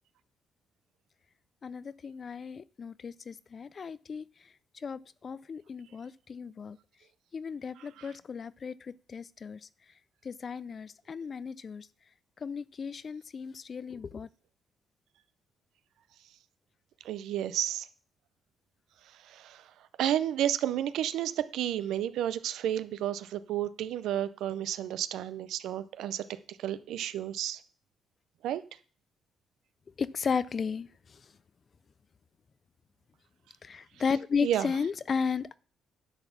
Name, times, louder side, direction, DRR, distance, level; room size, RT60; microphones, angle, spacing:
voice 1, 1.6-4.2 4.8-6.8 7.3-9.6 10.2-11.9 12.4-14.3 30.0-30.9 33.6-35.6, left 6 dB, 45° left, 0.4 m, -34 dB
voice 2, 7.8-8.1 17.0-17.9 19.2-19.6 20.0-26.2 26.6-27.6 28.4-28.6 34.4-34.7, right 11 dB, 85° right, 0.6 m, -31 dB
10.5 x 4.1 x 7.0 m
cardioid pair, 90°, 0 cm